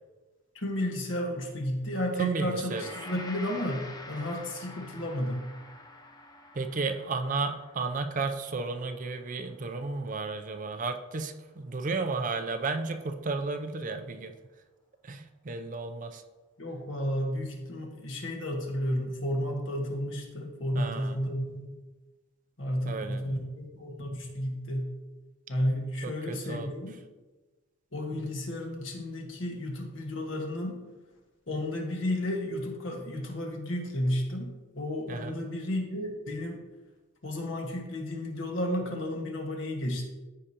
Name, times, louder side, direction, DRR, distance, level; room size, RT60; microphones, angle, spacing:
voice 1, 0.5-5.4 16.6-21.7 22.6-24.9 25.5-26.9 27.9-30.8 31.5-34.5 34.7-36.6 37.2-40.0, left 1 dB, 60° left, 0 dB, 1.6 m, -32 dB
voice 2, 2.2-2.9 6.5-14.3 15.0-16.2 20.7-21.2 22.8-23.4 26.0-26.7 28.1-28.2 35.1-35.4, right 3 dB, 40° right, 7 dB, 0.5 m, -33 dB
Gong, 2.7-11.1 11.5-11.6, left 2 dB, 20° left, 0.5 m, -48 dB
14.0 x 4.9 x 2.9 m, 1.2 s
head